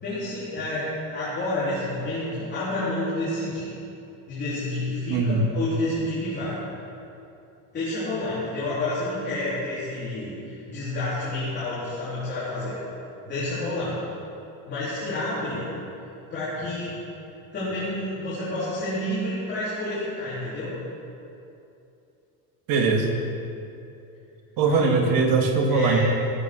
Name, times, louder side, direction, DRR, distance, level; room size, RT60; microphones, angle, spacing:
voice 1, 0.0-3.7 4.3-6.6 7.7-12.8 13.2-14.0 14.7-15.7 16.3-17.0 17.5-20.7 24.7-25.1 25.7-26.0, left 1 dB, 25° left, -11 dB, 3.6 m, -29 dB
voice 2, 5.1-5.5 22.7-23.2 24.6-26.0, right 4 dB, 55° right, 3 dB, 1.7 m, -21 dB
15.5 x 8.6 x 6.3 m, 2.7 s
cardioid pair, 170°, 40 cm